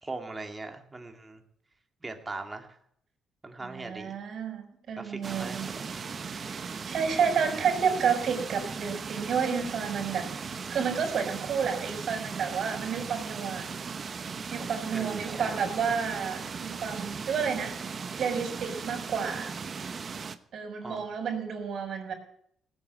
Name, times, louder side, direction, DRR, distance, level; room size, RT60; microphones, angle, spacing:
voice 1, 0.0-1.4 2.0-2.8 3.4-4.2 5.0-5.9 14.9-15.7 20.8-21.1, right 3 dB, 20° right, 4 dB, 2.4 m, -40 dB
voice 2, 3.6-5.7 6.3-10.3 10.5-13.7 14.5-19.5 20.5-22.1, right 6 dB, 60° right, 3 dB, 5.5 m, -30 dB
sound 1, 5.2-20.4, right 5 dB, 45° right, 1.0 m, -38 dB
18.0 x 8.2 x 8.4 m, 0.69 s
cardioid pair, 90°, 0 cm